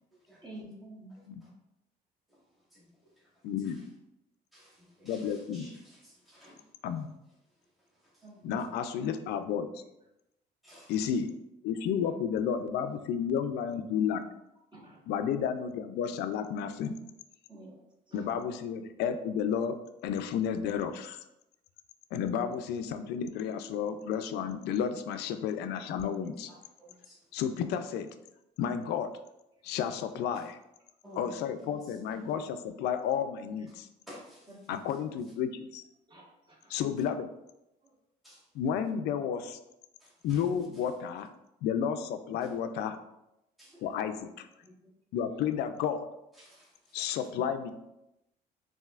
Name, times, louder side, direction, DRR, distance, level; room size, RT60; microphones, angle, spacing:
voice 1, 0.4-1.2 8.2-8.6 14.7-15.1 17.5-17.8 18.1-18.3 32.2-32.4 34.5-34.9 36.1-36.7 37.8-37.9 43.7-43.9 44.6-44.7 45.3-45.4, right 1 dB, 25° right, -3 dB, 1.3 m, -50 dB
voice 2, 1.1-1.5 2.3-3.9 4.5-6.8 7.4-8.5 10.6-11.0 26.2-27.4 29.6-29.8 30.3-30.5 31.0-32.3 34.1-35.3 38.2-38.5 40.0-40.9 42.4-42.6 43.6-43.8 46.3-47.3, equal, ahead, -7 dB, 1.4 m, -55 dB
voice 3, 3.4-3.8 5.0-5.7 6.8-7.1 8.4-9.8 10.9-11.3 11.6-14.2 15.1-17.0 18.1-19.8 20.0-21.2 22.1-26.5 27.3-28.1 28.6-29.2 29.6-30.6 31.2-33.9 34.7-35.8 36.7-37.3 38.6-39.6 40.2-41.3 41.6-43.0 43.8-44.5 45.1-46.1 46.9-47.7, left 8 dB, 80° left, 9 dB, 0.4 m, -32 dB
5.5 x 2.7 x 2.4 m, 0.88 s
cardioid pair, 110°, 17 cm